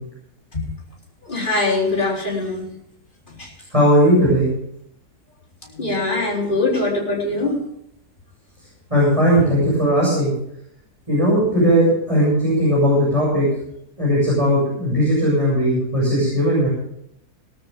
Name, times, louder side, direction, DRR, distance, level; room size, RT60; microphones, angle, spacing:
voice 1, 1.2-2.7 3.3-3.5 5.6-7.6 9.4-9.5, left 2 dB, 30° left, -3 dB, 4.2 m, -23 dB
voice 2, 3.7-4.5 8.9-10.3 11.1-13.4 14.0-16.7, equal, 20° right, -7 dB, 7.7 m, -17 dB
19.5 x 13.0 x 3.7 m, 0.72 s
omnidirectional pair, 1.7 m